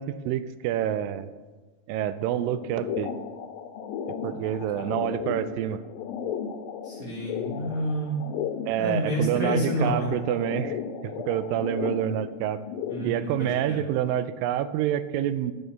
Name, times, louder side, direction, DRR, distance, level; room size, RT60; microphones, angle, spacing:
voice 1, 0.0-1.3 1.9-3.1 4.2-5.8 8.7-12.6 13.0-15.5, right 11 dB, 85° right, 13 dB, 2.2 m, -27 dB
sound 1, 2.4-13.2, left 7 dB, 90° left, 2.4 m, -35 dB
voice 2, 6.8-8.2 8.8-10.1 12.9-13.8, equal, 45° right, -5 dB, 1.1 m, -29 dB
10.5 x 6.6 x 5.6 m, 1.3 s
omnidirectional pair, 4.1 m